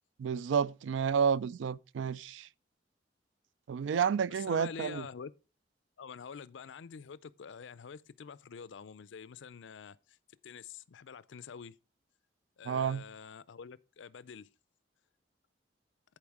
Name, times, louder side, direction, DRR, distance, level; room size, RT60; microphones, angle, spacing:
voice 1, 0.2-2.5 3.7-5.0 12.7-13.0, right 7 dB, 80° right, 0.3 m, -30 dB
voice 2, 4.3-5.3 6.0-10.2 10.4-11.8 12.6-14.5, left 6 dB, 80° left, 0.4 m, -47 dB
10.5 x 4.7 x 4.7 m
head